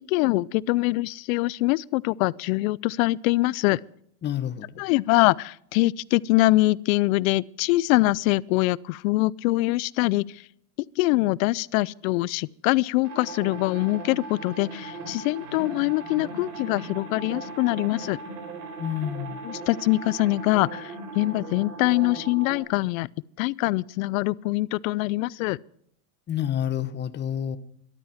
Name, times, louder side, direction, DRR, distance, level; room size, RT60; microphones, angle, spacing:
voice 1, 0.1-3.8 4.8-10.4 11.0-18.2 19.4-23.1 23.4-25.6, left 20 dB, 60° left, 0.6 m, -24 dB
voice 2, 4.2-4.7 18.8-19.4 26.3-27.6, left 10 dB, 25° left, 1.0 m, -28 dB
sound 1, 13.0-22.6, right 3 dB, 75° right, 4.2 m, -38 dB
13.5 x 12.5 x 5.7 m
supercardioid pair, 130°, 46 cm